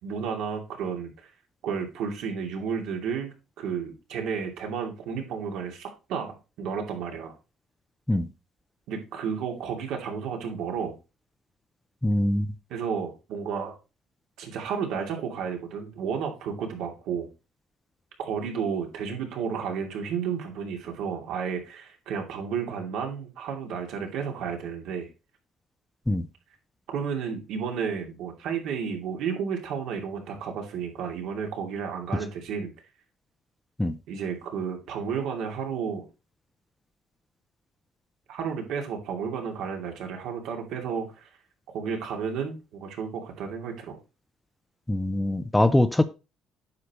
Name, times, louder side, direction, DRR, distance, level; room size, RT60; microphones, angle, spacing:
voice 1, 0.0-1.3 1.6-7.3 8.9-10.9 12.7-13.7 14.4-17.3 18.2-25.1 26.9-32.7 34.1-36.0 38.3-41.3 41.7-44.0, right 6 dB, 75° right, 2.6 m, -32 dB
voice 2, 12.0-12.5 26.1-26.3 33.8-34.0 44.9-46.0, left 1 dB, 5° left, 0.5 m, -23 dB
9.5 x 6.7 x 3.0 m
cardioid pair, 155°, 0 cm